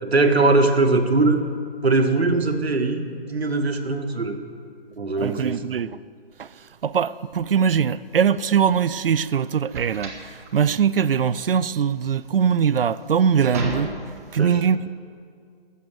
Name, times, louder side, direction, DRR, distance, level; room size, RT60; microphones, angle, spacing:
voice 1, 0.0-1.4 1.8-4.4 5.0-5.6 14.3-14.6, right 3 dB, 85° right, 1.6 m, -21 dB
voice 2, 5.2-6.0 6.4-13.9 14.3-14.9, right 7 dB, 65° right, 0.5 m, -22 dB
sound 1, 8.3-14.3, right 2 dB, 15° right, 0.9 m, -35 dB
14.0 x 7.9 x 7.5 m
hypercardioid pair, 160°, 31 cm